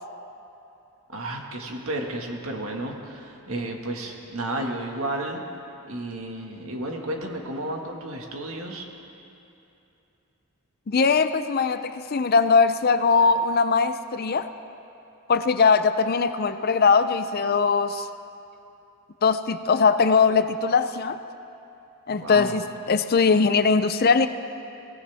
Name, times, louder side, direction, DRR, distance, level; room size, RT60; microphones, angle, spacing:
voice 1, 1.1-5.4 5.9-8.9 22.2-22.6, right 1 dB, 70° right, 1 dB, 1.8 m, -32 dB
voice 2, 10.9-14.5 15.3-18.1 19.2-21.2 22.1-24.3, left 5 dB, 45° left, 11 dB, 0.5 m, -21 dB
23.5 x 17.5 x 3.5 m, 2.8 s
head